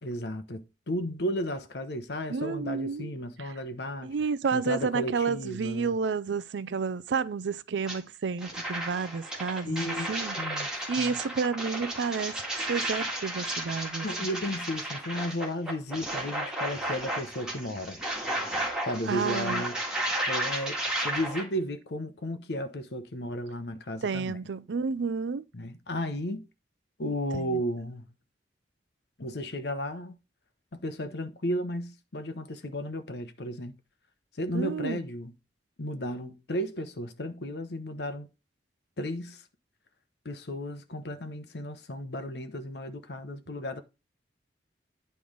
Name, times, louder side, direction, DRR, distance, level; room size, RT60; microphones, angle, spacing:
voice 1, 0.0-4.1 4.5-6.0 9.6-11.2 14.0-18.0 18.9-19.8 20.3-24.4 25.5-26.4 27.0-28.1 29.2-30.1 30.7-33.8 34.4-35.3 35.8-38.3 39.0-39.4 40.2-43.8, equal, 65° left, 0.9 m, -34 dB
voice 2, 2.3-3.1 3.4-3.5 4.0-10.4 10.9-12.3 12.7-14.1 19.1-19.6 24.0-25.4 27.0-27.6 34.5-35.0, right 5 dB, 80° right, 0.5 m, -30 dB
sound 1, 7.9-8.0 8.4-21.4, right 1 dB, 5° right, 1.8 m, -33 dB
9.4 x 3.3 x 5.2 m
head